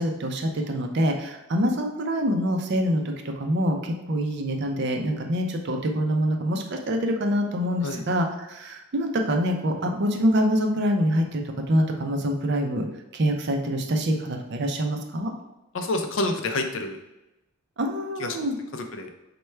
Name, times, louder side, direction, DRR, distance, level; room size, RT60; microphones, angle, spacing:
voice 1, 0.0-12.9 13.1-15.3 17.8-18.6, equal, 50° right, 4 dB, 0.4 m, -25 dB
voice 2, 15.7-17.0 18.2-18.5 18.7-19.1, left 2 dB, 60° left, 5 dB, 0.4 m, -28 dB
4.3 x 2.2 x 3.2 m, 0.96 s
head